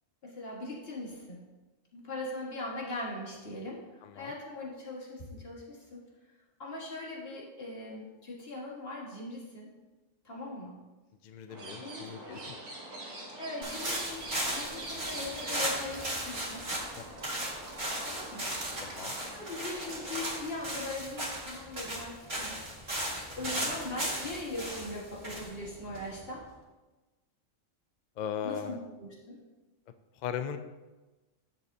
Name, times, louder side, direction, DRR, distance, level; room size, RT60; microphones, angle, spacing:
voice 1, 0.2-1.4 1.9-6.0 6.6-9.7 10.2-10.8 11.8-12.5 13.4-14.2 14.5-16.7 18.0-19.0 19.3-22.7 23.4-26.4 28.4-29.4, left 2 dB, 50° left, -4 dB, 1.9 m, -40 dB
voice 2, 4.0-4.3 11.2-12.6 17.0-17.1 18.8-19.1 23.4-23.7 28.2-28.8 30.2-30.6, left 8 dB, 85° left, 9 dB, 0.4 m, -38 dB
sound 1, 11.5-20.4, right 2 dB, 80° right, 1.7 m, -44 dB
sound 2, 13.6-26.4, right 1 dB, 35° right, 2.0 m, -36 dB
9.9 x 7.2 x 2.8 m, 1.2 s
omnidirectional pair, 1.3 m